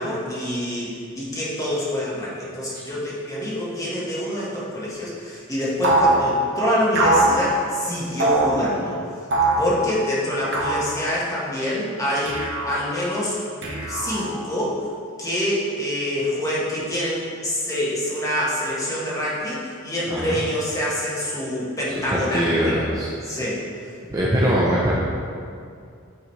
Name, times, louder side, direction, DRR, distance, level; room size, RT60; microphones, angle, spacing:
voice 1, 0.0-9.0 9.6-13.4 13.9-14.9 15.2-22.8 23.2-23.6, left 1 dB, 15° left, -7 dB, 1.4 m, -26 dB
sound 1, 5.8-6.2 6.9-7.3 8.2-8.5 9.3-9.6 10.5-10.9 12.3-12.8 13.6-14.3, right 2 dB, 60° right, 1.2 m, -20 dB
voice 2, 20.1-20.4 22.1-23.3 24.1-24.9, equal, 15° right, -6 dB, 0.6 m, -22 dB
8.9 x 4.0 x 3.2 m, 2.4 s
head